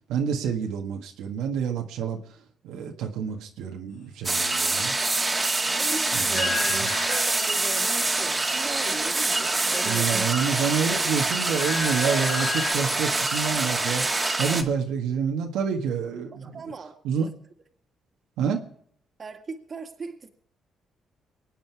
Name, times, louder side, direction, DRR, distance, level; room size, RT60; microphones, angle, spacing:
voice 1, 0.1-2.2 2.6-4.9 6.1-6.9 9.8-14.0 14.4-16.6 17.0-17.3 18.4-18.6, right 7 dB, 90° right, 2 dB, 1.6 m, -28 dB
sound 1, 4.2-14.6, right 2 dB, 20° right, 1.9 m, -25 dB
voice 2, 5.8-10.2 10.9-11.4 16.4-17.3 19.2-20.3, right 4 dB, 40° right, 5 dB, 2.0 m, -38 dB
sound 2, 6.3-7.9 9.8-10.5 10.9-12.7, left 7 dB, 90° left, 4.9 m, -34 dB
23.5 x 9.0 x 4.7 m, 0.64 s
cardioid pair, 90°, 0 cm